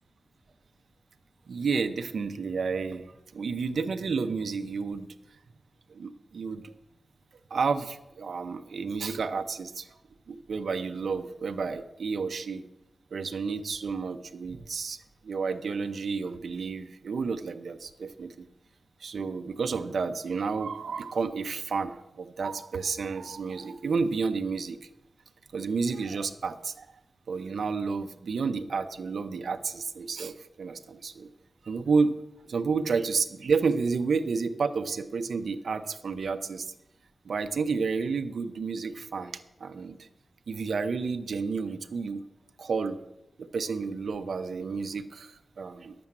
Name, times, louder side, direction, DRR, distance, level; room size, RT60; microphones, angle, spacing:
voice 1, 1.5-3.1 3.3-5.1 5.9-6.7 7.5-10.0 10.3-12.6 13.1-15.0 15.2-18.5 19.0-24.9 25.5-26.9 27.3-31.3 31.7-32.2 32.5-36.7 37.2-40.1 40.5-42.2 42.6-43.0 43.4-45.9, right 5 dB, 75° right, 8 dB, 0.7 m, -31 dB
10.5 x 6.9 x 7.4 m, 0.89 s
wide cardioid pair, 85°, 0 cm